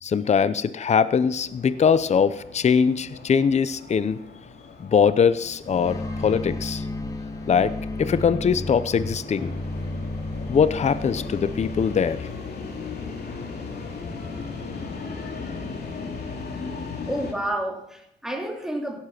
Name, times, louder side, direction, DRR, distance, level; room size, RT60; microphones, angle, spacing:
voice 1, 0.0-4.2 4.8-6.8 7.5-9.5 10.5-12.3, left 6 dB, 35° left, 14 dB, 0.7 m, -22 dB
sound 1, 1.1-17.3, left 4 dB, 55° left, 2.7 m, -38 dB
sound 2, 5.6-12.0, left 2 dB, 15° left, 1.5 m, -33 dB
voice 2, 17.1-19.0, right 1 dB, ahead, 1 dB, 2.9 m, -30 dB
16.5 x 7.4 x 5.9 m, 0.80 s
cardioid pair, 90°, 20 cm